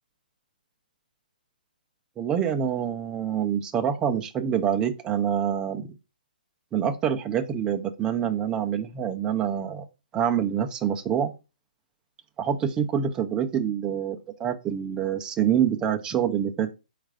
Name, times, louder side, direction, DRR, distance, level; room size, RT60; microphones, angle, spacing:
voice 1, 2.2-5.9 6.7-9.9 10.1-11.3 12.4-16.7, right 8 dB, 15° right, 5 dB, 0.5 m, -26 dB
4.4 x 2.5 x 4.7 m, 0.28 s
hypercardioid pair, 145°, 5 cm